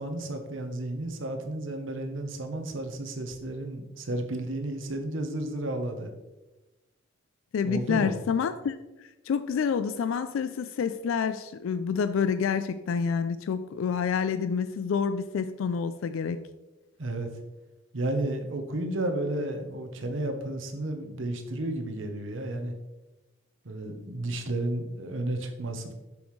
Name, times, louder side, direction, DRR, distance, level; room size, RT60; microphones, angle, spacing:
voice 1, 0.0-6.1 7.6-8.2 17.0-17.3 17.9-22.7 23.6-25.9, right 1 dB, 80° right, 5 dB, 1.0 m, -32 dB
voice 2, 7.5-8.8 9.0-16.4, left 6 dB, 90° left, 12 dB, 0.3 m, -28 dB
6.9 x 6.3 x 3.2 m, 1.1 s
head